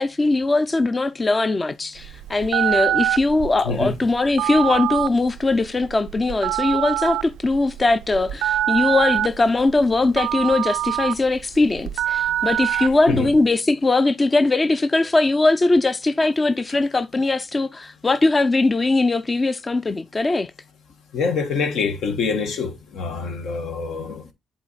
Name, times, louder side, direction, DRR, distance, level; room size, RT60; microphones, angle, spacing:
voice 1, 0.0-20.5, left 2 dB, 25° left, 0.5 m, -20 dB
Telephone, 2.0-13.4, right 12 dB, 90° right, 0.3 m, -25 dB
voice 2, 3.6-4.1 12.7-13.3 16.2-16.3 16.7-16.8 21.1-24.3, left 4 dB, 75° left, 1.4 m, -26 dB
8.2 x 3.8 x 4.0 m
cardioid pair, 90°, 0 cm